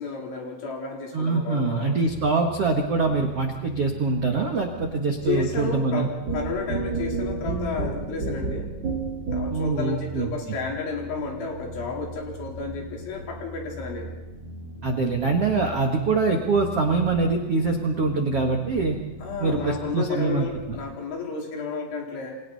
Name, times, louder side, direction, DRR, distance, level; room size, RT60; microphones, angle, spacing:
voice 1, 0.0-1.9 5.3-8.7 9.3-14.1 19.2-22.4, left 4 dB, 70° left, -1 dB, 6.3 m, -32 dB
voice 2, 1.1-6.1 9.5-10.3 14.8-19.0 19.4-20.5, right 3 dB, 80° right, 2 dB, 1.3 m, -24 dB
sound 1, 2.0-20.8, equal, 50° left, 8.2 m, -40 dB
sound 2, 6.3-9.8, right 4 dB, 30° right, 2.1 m, -29 dB
29.0 x 25.0 x 4.2 m, 1.0 s
omnidirectional pair, 5.6 m